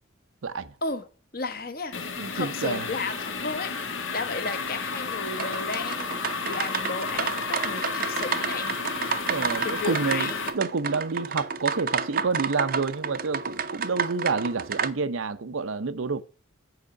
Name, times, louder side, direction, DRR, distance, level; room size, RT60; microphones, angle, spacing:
voice 1, 0.4-0.7 2.2-2.9 9.3-16.2, right 4 dB, 85° right, 0.7 m, -29 dB
voice 2, 1.3-1.9 2.3-8.8 9.6-10.4, left 3 dB, 45° left, 1.1 m, -33 dB
sound 1, 1.9-10.5, left 5 dB, 75° left, 1.2 m, -32 dB
Bowed string instrument, 2.5-7.3, right 2 dB, 15° left, 0.6 m, -50 dB
sound 2, 5.4-14.9, right 6 dB, 45° right, 0.6 m, -31 dB
7.9 x 4.8 x 6.6 m
head